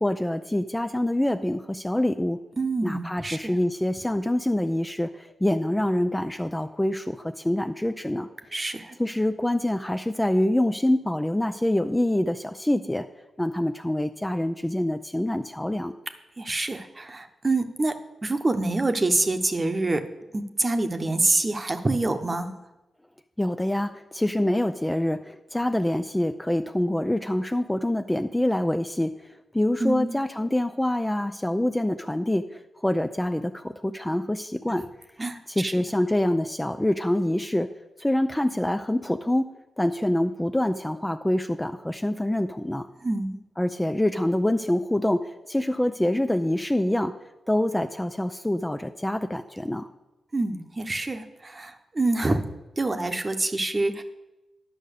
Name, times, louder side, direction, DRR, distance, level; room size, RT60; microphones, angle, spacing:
voice 1, 0.0-2.4 2.8-8.3 9.0-13.1 13.4-16.0 23.4-29.1 29.5-34.8 35.6-37.7 38.0-39.5 39.8-42.9 43.6-47.1 47.5-49.9, left 1 dB, 10° left, 8 dB, 0.5 m, -25 dB
voice 2, 2.6-3.5 8.5-9.0 16.4-18.0 18.2-20.0 20.3-22.5 29.8-30.1 35.2-35.7 43.0-43.4 50.3-52.4 52.8-54.0, right 2 dB, 30° right, 8 dB, 1.0 m, -26 dB
10.0 x 5.5 x 6.6 m, 0.99 s
cardioid pair, 60°, 0 cm